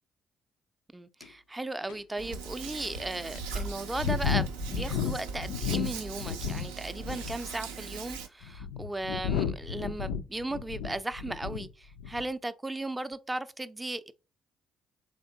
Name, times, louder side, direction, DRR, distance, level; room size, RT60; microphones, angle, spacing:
voice 1, 0.9-14.1, right 2 dB, 15° right, 0.4 m, -36 dB
sound 1, 1.2-1.3 1.9-2.0 2.6-2.7 3.3-6.7 7.0-7.5 8.2-11.7 12.0-12.3, left 7 dB, 80° left, 0.3 m, -33 dB
Hands, 2.2-8.3, right 5 dB, 85° right, 0.4 m, -40 dB
3.6 x 3.4 x 2.7 m
hypercardioid pair, 45°, 0 cm